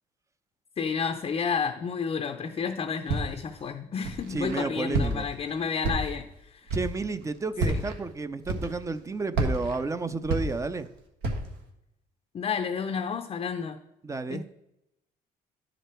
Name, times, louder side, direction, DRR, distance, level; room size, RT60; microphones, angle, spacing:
voice 1, 0.8-6.7 7.7-7.8 12.3-13.8 14.3-14.4, left 6 dB, 35° left, 6 dB, 0.5 m, -31 dB
Walk footsteps, 3.1-3.5 4.0-4.6 4.9-5.4 5.8-6.3 6.7-7.0 7.5-8.0 8.4-9.0 9.3-10.9 11.2-11.6, right 2 dB, 80° right, 1.5 m, -29 dB
voice 2, 4.3-5.3 6.7-10.9 14.0-14.4, right 3 dB, 20° right, 12 dB, 0.5 m, -31 dB
11.0 x 5.1 x 4.4 m, 0.85 s
cardioid pair, 110°, 17 cm